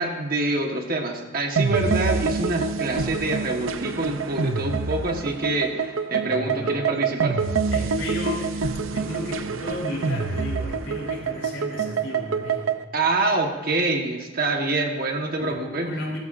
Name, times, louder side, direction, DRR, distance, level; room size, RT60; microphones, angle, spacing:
voice 1, 0.0-7.5 12.9-15.9, right 2 dB, 45° right, 2 dB, 1.5 m, -26 dB
sound 1, 1.6-12.8, right 5 dB, 90° right, 0.7 m, -26 dB
voice 2, 6.1-6.8 7.7-12.6 15.4-16.2, equal, 80° left, -3 dB, 4.3 m, -33 dB
19.5 x 14.0 x 2.7 m, 1.3 s
head